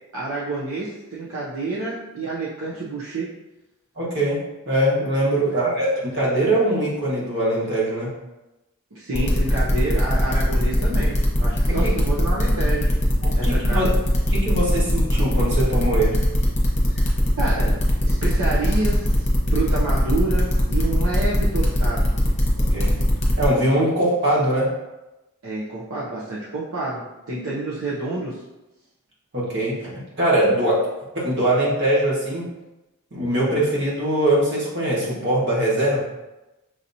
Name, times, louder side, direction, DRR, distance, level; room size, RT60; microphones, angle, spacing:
voice 1, 0.1-3.3 5.5-5.7 8.9-12.9 13.4-13.8 16.9-17.1 17.4-19.3 19.5-22.2 25.4-28.4, right 2 dB, 65° right, -7 dB, 0.8 m, -28 dB
voice 2, 4.0-5.9 6.1-8.1 11.7-11.9 13.2-13.9 14.3-16.2 22.7-22.9 23.4-24.7 29.3-30.8 31.1-32.5 33.1-36.0, right 1 dB, 50° right, -6 dB, 1.5 m, -22 dB
sound 1, 9.1-23.4, left 1 dB, 30° left, 1.0 m, -23 dB
6.2 x 2.9 x 2.7 m, 1.0 s
head